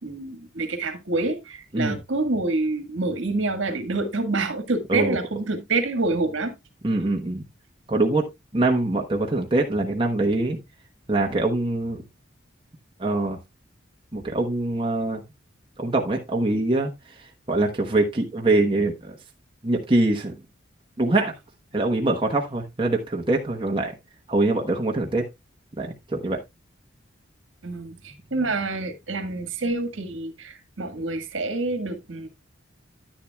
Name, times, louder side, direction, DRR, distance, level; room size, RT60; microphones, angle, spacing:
voice 1, 0.0-6.5 27.6-32.3, right 3 dB, 70° right, 1.6 m, -27 dB
voice 2, 6.8-7.4 7.9-8.3 8.5-10.6 11.1-12.0 13.0-13.4 14.1-15.2 15.8-16.9 17.2-19.2 19.6-20.3 21.0-21.3 21.7-23.9 24.3-25.3 25.8-26.4, right 2 dB, 25° right, 1.0 m, -23 dB
10.0 x 10.0 x 2.3 m
head